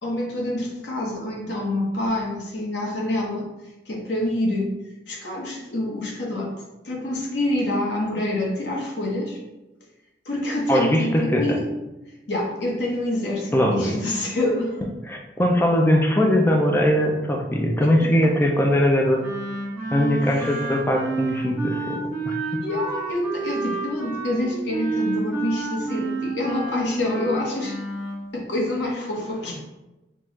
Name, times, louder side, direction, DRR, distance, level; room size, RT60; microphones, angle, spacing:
voice 1, 0.0-3.5 3.9-4.7 5.1-6.5 6.8-9.4 10.2-11.7 12.3-14.8 17.8-18.1 20.2-20.6 22.6-27.8 28.3-29.6, left 1 dB, 75° left, -2 dB, 1.1 m, -26 dB
voice 2, 10.7-11.6 13.5-14.0 15.1-19.2 19.9-22.6, equal, 15° left, 2 dB, 0.4 m, -21 dB
Wind instrument woodwind instrument, 19.2-28.2, right 3 dB, 10° right, 1.3 m, -30 dB
5.9 x 2.3 x 3.1 m, 1.0 s
head